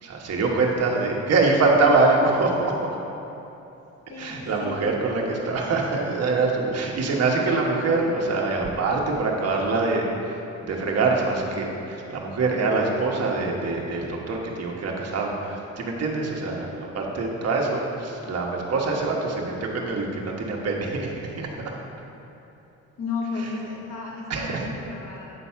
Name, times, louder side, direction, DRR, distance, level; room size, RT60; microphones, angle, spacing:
voice 1, 0.0-3.0 4.2-21.7 23.4-23.5 24.3-24.7, right 3 dB, 55° right, -1 dB, 1.3 m, -24 dB
voice 2, 4.1-4.8 23.0-25.3, left 4 dB, 60° left, -5 dB, 1.4 m, -33 dB
8.7 x 4.0 x 5.8 m, 2.9 s
cardioid pair, 90°, 30 cm